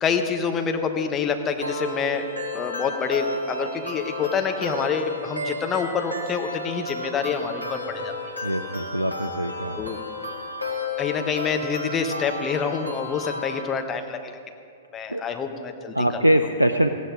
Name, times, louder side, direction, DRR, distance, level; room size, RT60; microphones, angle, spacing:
voice 1, 0.0-2.2 2.5-8.1 9.7-10.0 11.0-14.4 14.9-16.2, left 6 dB, 20° left, 5 dB, 1.2 m, -27 dB
sound 1, 1.6-13.6, left 2 dB, 90° left, 1.9 m, -33 dB
voice 2, 8.4-9.9 15.1-15.2 15.9-16.9, right 1 dB, 90° right, 8 dB, 0.5 m, -23 dB
18.0 x 15.5 x 3.8 m, 2.4 s
figure-of-eight pair, 105°, 0 cm